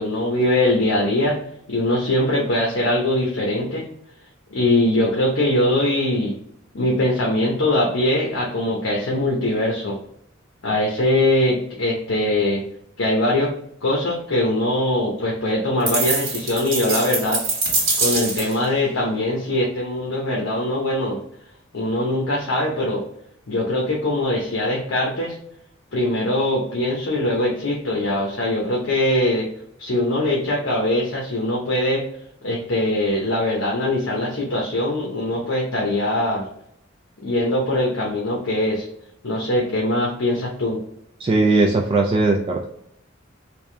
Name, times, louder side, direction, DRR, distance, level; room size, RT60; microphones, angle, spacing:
voice 1, 0.0-1.4 1.7-3.8 4.5-6.3 6.7-10.0 10.6-12.6 13.0-13.5 13.8-17.4 18.0-21.2 21.7-23.0 23.5-25.4 25.9-29.5 29.8-32.0 32.4-36.5 37.2-38.9 39.2-40.8, left 1 dB, 70° left, -3 dB, 0.9 m, -22 dB
sound 1, 15.9-18.6, right 3 dB, 75° right, 1.5 m, -23 dB
voice 2, 41.2-42.7, right 2 dB, 30° right, 0 dB, 0.3 m, -18 dB
3.4 x 2.6 x 3.2 m, 0.73 s
head